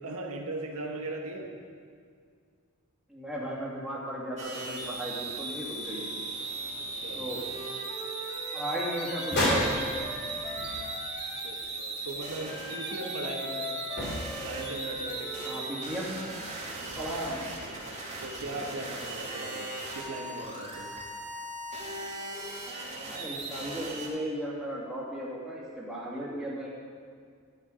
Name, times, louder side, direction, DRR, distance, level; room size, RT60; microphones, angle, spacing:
voice 1, 0.0-1.5 6.9-7.3 11.4-13.7 14.4-15.5 16.7-17.0 18.2-19.7 19.9-20.9, right 2 dB, 75° right, 1 dB, 1.4 m, -38 dB
voice 2, 3.1-6.2 7.2-7.4 8.5-9.9 15.5-16.1 17.0-17.5 23.0-26.7, equal, ahead, -7 dB, 2.7 m, -36 dB
sound 1, 4.4-24.1, right 2 dB, 35° right, 2.4 m, -38 dB
Wind instrument woodwind instrument, 7.4-11.5 12.4-15.8, equal, 25° left, 2.3 m, -40 dB
sound 2, 9.2-11.4 11.6-11.7 13.9-15.0, left 1 dB, 50° left, 3.3 m, -31 dB
12.0 x 10.5 x 5.1 m, 2.1 s
head